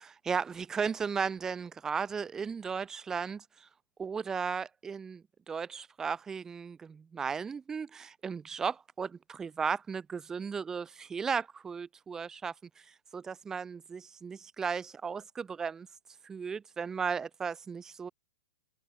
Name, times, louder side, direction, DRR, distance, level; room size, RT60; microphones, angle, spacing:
voice 1, 0.0-3.7 4.0-12.5 13.1-15.9 16.2-18.1, right 6 dB, 10° right, 0.7 m, -35 dB
open air
hypercardioid pair, 150°, 5 cm